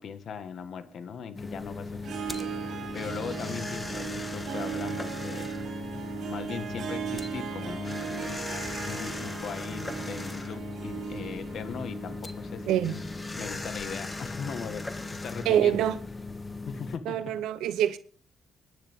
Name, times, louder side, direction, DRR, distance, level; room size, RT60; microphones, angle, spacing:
voice 1, 0.0-5.5 6.3-8.4 8.8-12.8 13.4-14.8 15.1-15.9 16.7-17.2, left 6 dB, 60° left, 1.5 m, -39 dB
sound 1, 1.3-17.0, left 3 dB, 20° left, 1.5 m, -38 dB
Harp, 2.0-13.9, right 8 dB, 65° right, 4.4 m, -38 dB
voice 2, 12.7-13.0 15.4-16.0 17.1-18.0, right 11 dB, 90° right, 0.7 m, -25 dB
27.5 x 10.0 x 3.6 m
cardioid pair, 90°, 0 cm